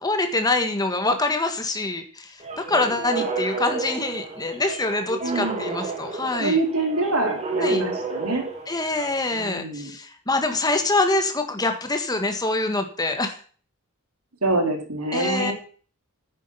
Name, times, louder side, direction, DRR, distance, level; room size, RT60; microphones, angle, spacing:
voice 1, 0.0-2.3 2.6-6.6 7.6-7.8 8.7-13.4 15.1-15.5, left 2 dB, 20° left, 6 dB, 1.6 m, -25 dB
sound 1, 2.4-9.3, right 3 dB, 30° right, 3.2 m, -31 dB
voice 2, 5.2-5.7 6.4-8.5 9.3-9.9 14.4-15.5, right 2 dB, 85° right, 2 dB, 3.4 m, -25 dB
9.9 x 9.5 x 5.6 m, 0.42 s
head